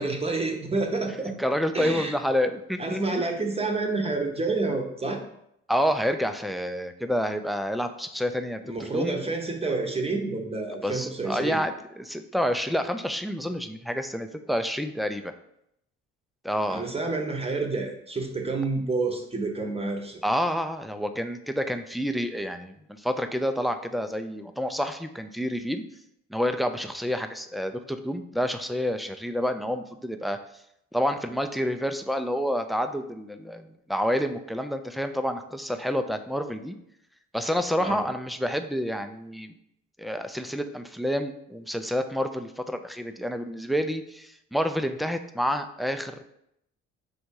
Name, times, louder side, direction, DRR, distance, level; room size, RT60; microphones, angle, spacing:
voice 1, 0.0-1.3 1.7-2.1 2.8-5.2 8.6-11.6 16.7-20.2 37.8-38.0, right 3 dB, 20° right, 2 dB, 0.8 m, -29 dB
voice 2, 1.4-3.2 5.7-9.2 10.8-15.3 16.4-16.8 20.2-25.8 26.3-30.4 30.9-36.8 37.3-39.5 40.0-46.3, equal, ahead, 7 dB, 0.3 m, -28 dB
3.4 x 2.7 x 4.5 m, 0.77 s
supercardioid pair, 55°, 31 cm